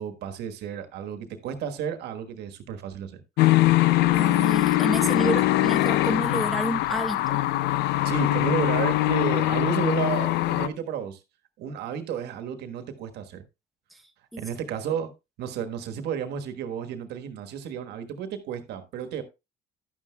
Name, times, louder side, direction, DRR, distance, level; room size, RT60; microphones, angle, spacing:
voice 1, 0.0-3.2 8.0-11.2 11.6-13.4 14.4-15.1 15.4-19.2, right 8 dB, 80° right, 1.3 m, -32 dB
sound 1, 3.4-10.7, left 16 dB, 80° left, 0.5 m, -22 dB
voice 2, 4.1-7.4 13.9-14.0 14.3-14.4, right 1 dB, ahead, 0.8 m, -30 dB
11.0 x 9.5 x 2.2 m
cardioid pair, 110°, 17 cm